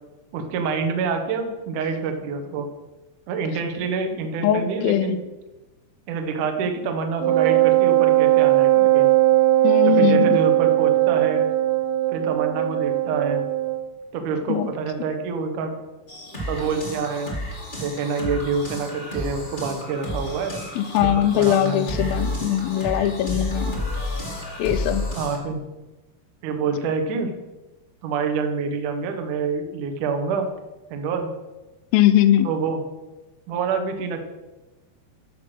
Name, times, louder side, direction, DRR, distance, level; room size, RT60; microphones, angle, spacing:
voice 1, 0.3-2.7 3.3-5.2 6.1-9.1 9.8-11.4 12.1-13.5 14.1-15.8 16.5-17.3 17.8-20.6 21.0-22.1 25.1-25.6 26.4-27.3 28.0-30.5 30.9-31.3 32.4-32.8 33.5-34.2, right 5 dB, 65° right, 5 dB, 2.0 m, -27 dB
voice 2, 4.4-5.2 9.6-10.4 14.5-14.7 20.8-23.7 24.6-25.0 31.9-32.5, left 11 dB, 85° left, 9 dB, 2.1 m, -20 dB
Wind instrument woodwind instrument, 7.2-13.8, right 15 dB, 85° right, 3.3 m, -19 dB
sound 1, 16.1-25.4, left 1 dB, 35° left, 0.7 m, -31 dB
13.0 x 6.0 x 6.2 m, 1.1 s
omnidirectional pair, 5.1 m